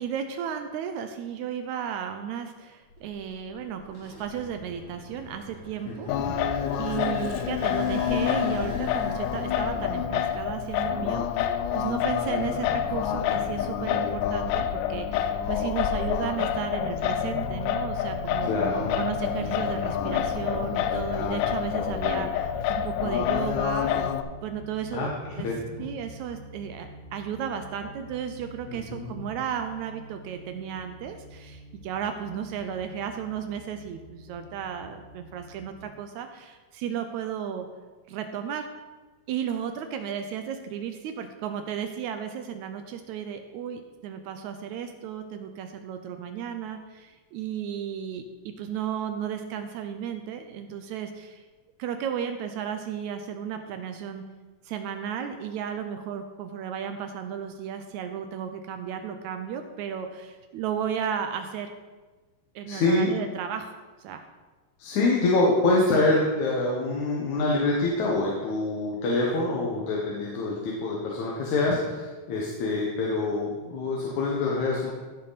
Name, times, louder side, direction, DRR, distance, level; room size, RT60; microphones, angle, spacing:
voice 1, 0.0-6.5 6.8-18.5 19.0-24.1 24.4-25.1 25.4-25.5 25.8-37.7 38.1-38.7 39.3-51.4 51.8-54.2 54.6-61.7 62.5-63.7 64.0-64.3, right 8 dB, 75° right, 7 dB, 1.8 m, -34 dB
sound 1, 2.9-11.9 12.4-14.2, left 2 dB, 35° left, 2.8 m, -44 dB
voice 2, 5.9-6.4 18.5-18.9 24.9-25.9 28.7-29.2 62.7-63.1 64.8-74.9, left 2 dB, 70° left, -3 dB, 2.6 m, -26 dB
Singing, 6.1-24.2, left 9 dB, 85° left, 2.2 m, -27 dB
sound 2, 16.8-35.8, right 1 dB, ahead, 3.0 m, -44 dB
15.0 x 6.5 x 4.1 m, 1.3 s
omnidirectional pair, 3.7 m